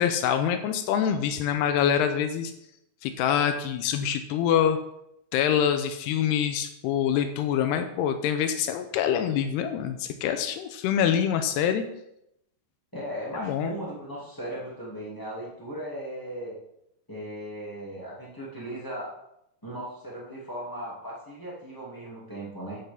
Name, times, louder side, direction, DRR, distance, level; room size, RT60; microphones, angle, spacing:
voice 1, 0.0-2.5 3.0-4.8 5.3-11.8 13.3-13.7, left 9 dB, 85° left, 8 dB, 2.4 m, -25 dB
voice 2, 12.9-16.5 17.1-19.1 19.6-22.8, right 1 dB, 25° left, -7 dB, 0.4 m, -37 dB
11.0 x 8.1 x 3.5 m, 0.79 s
omnidirectional pair, 5.4 m